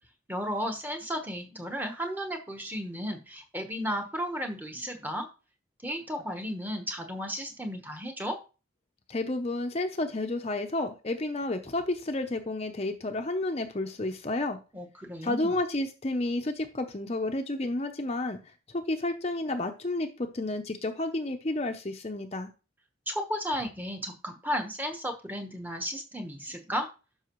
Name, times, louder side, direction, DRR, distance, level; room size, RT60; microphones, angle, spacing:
voice 1, 0.3-5.3 5.8-8.4 14.7-15.5 23.1-26.9, equal, 10° right, 3 dB, 1.1 m, -34 dB
voice 2, 9.1-14.6 15.2-18.4 18.7-22.5, left 2 dB, 30° left, 6 dB, 0.6 m, -31 dB
12.0 x 5.5 x 3.0 m, 0.32 s
head